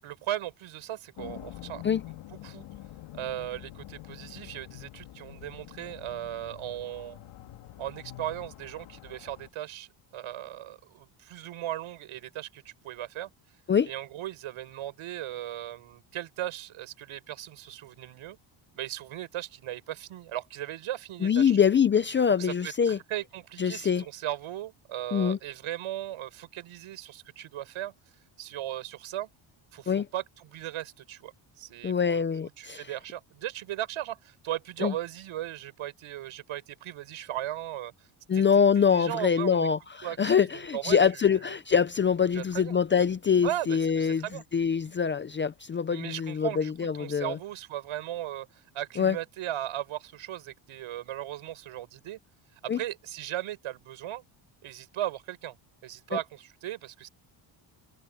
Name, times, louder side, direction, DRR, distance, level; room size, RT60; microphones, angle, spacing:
voice 1, 0.0-1.8 2.4-2.7 3.1-7.2 7.8-13.3 13.9-18.4 18.7-21.6 22.3-27.9 28.4-29.3 29.7-32.2 32.6-38.1 38.3-38.4 38.8-39.7 40.0-40.5 40.7-41.5 42.3-42.7 43.4-44.4 44.8-44.9 45.9-52.2 52.6-54.2 54.6-55.6 55.8-57.1, right 13 dB, 85° right, 6.8 m, -37 dB
sound 1, 1.2-9.5, left 14 dB, 75° left, 2.4 m, -46 dB
voice 2, 21.2-23.0 23.6-24.0 25.1-25.4 29.9-30.1 31.8-32.9 34.8-34.9 38.3-44.2 44.5-47.4 49.0-49.2 52.7-52.8 56.1-56.2, left 7 dB, 25° left, 0.3 m, -24 dB
cardioid pair, 175°, 48 cm